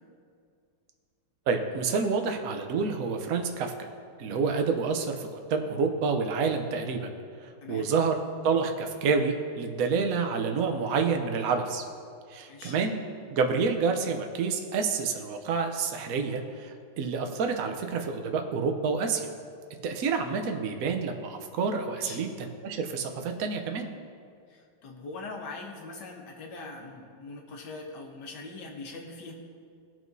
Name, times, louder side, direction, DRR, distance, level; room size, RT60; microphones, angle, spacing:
voice 1, 1.5-3.7 4.2-7.1 7.4-8.2 8.4-11.8 12.3-13.0 13.3-19.3 19.8-23.9, right 5 dB, 60° right, 4 dB, 1.0 m, -28 dB
voice 2, 24.5-29.3, left 3 dB, 60° left, 1 dB, 1.6 m, -42 dB
18.0 x 6.0 x 2.7 m, 2.3 s
omnidirectional pair, 2.1 m